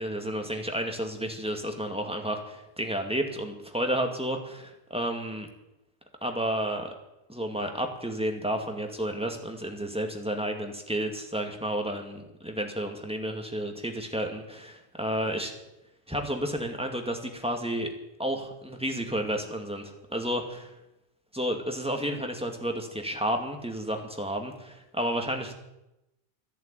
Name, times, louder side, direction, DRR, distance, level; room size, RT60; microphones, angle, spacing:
voice 1, 0.0-4.4 4.9-5.5 6.2-6.9 7.3-15.5 16.1-17.9 18.2-20.7 21.3-25.5, equal, 5° right, 3 dB, 2.2 m, -31 dB
14.0 x 11.0 x 9.1 m, 0.91 s
omnidirectional pair, 1.1 m